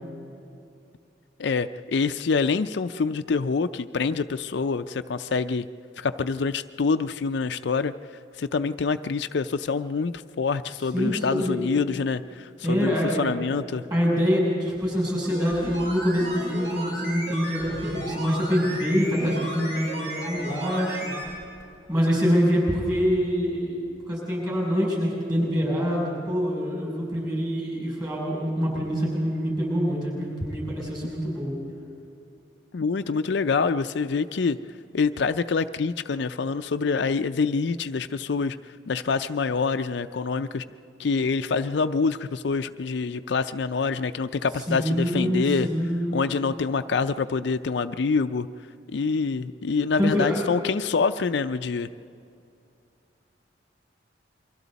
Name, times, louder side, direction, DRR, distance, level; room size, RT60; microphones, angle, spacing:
voice 1, 1.4-5.7 6.0-7.9 8.4-13.8 32.7-34.6 34.9-38.6 38.9-40.6 41.0-45.7 46.1-48.5 48.9-51.9, left 4 dB, 65° left, 9 dB, 0.4 m, -26 dB
voice 2, 10.9-11.6 12.6-13.3 13.9-21.1 21.9-23.8 24.1-31.6 44.7-46.2 50.0-50.5, equal, 20° right, -3 dB, 7.4 m, -25 dB
sound 1, 15.3-21.3 21.6-21.7, right 1 dB, 80° right, 6.6 m, -34 dB
28.5 x 23.5 x 4.1 m, 2.5 s
head